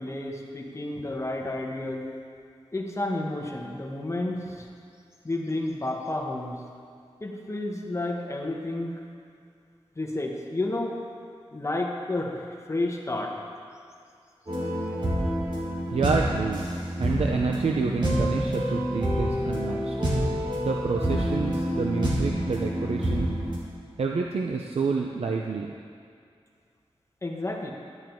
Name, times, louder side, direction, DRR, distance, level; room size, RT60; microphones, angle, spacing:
voice 1, 0.0-2.2 2.7-4.7 5.2-6.5 7.2-9.0 9.9-11.1 11.5-13.4 27.2-27.7, left 2 dB, 30° left, 1 dB, 1.3 m, -31 dB
sound 1, 14.5-23.6, equal, 45° right, 2.6 m, -27 dB
voice 2, 15.9-16.7 17.0-19.9 20.6-23.4 24.0-25.7, right 4 dB, 80° right, 1 dB, 0.7 m, -28 dB
12.5 x 10.0 x 4.6 m, 2.3 s
wide cardioid pair, 110°, 10 cm